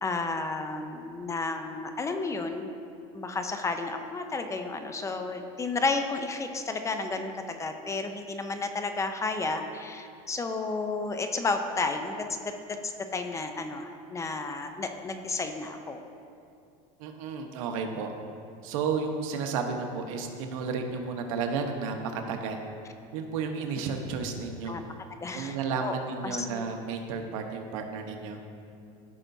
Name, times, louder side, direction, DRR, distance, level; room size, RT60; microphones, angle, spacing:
voice 1, 0.0-2.7 3.1-12.5 12.8-16.0 24.7-24.8 25.2-25.9 26.2-26.7, left 3 dB, 20° left, 6 dB, 0.5 m, -32 dB
voice 2, 17.0-18.1 18.6-22.6 23.1-24.8 25.3-28.4, right 5 dB, 80° right, 4 dB, 1.0 m, -32 dB
14.5 x 5.7 x 2.7 m, 2.5 s
supercardioid pair, 130°, 17 cm